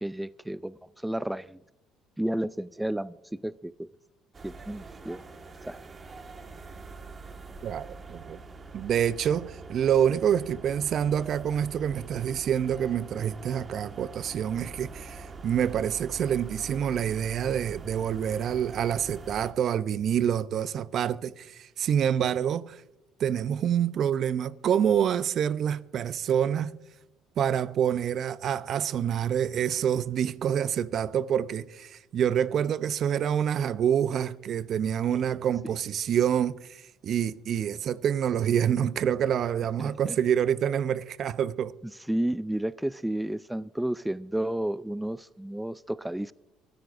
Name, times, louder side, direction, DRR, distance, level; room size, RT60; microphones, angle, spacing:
voice 1, 0.0-1.6 2.2-3.9 4.4-5.2 5.7-5.8 35.1-35.2 39.8-40.2 42.1-46.3, right 1 dB, 5° right, 0.4 m, -32 dB
sound 1, 4.3-19.5, right 4 dB, 35° right, 1.6 m, -44 dB
voice 2, 7.6-8.4 8.7-22.8 23.2-26.7 27.4-41.7, right 9 dB, 55° right, 0.6 m, -27 dB
24.0 x 13.0 x 2.6 m
supercardioid pair, 80°, 0 cm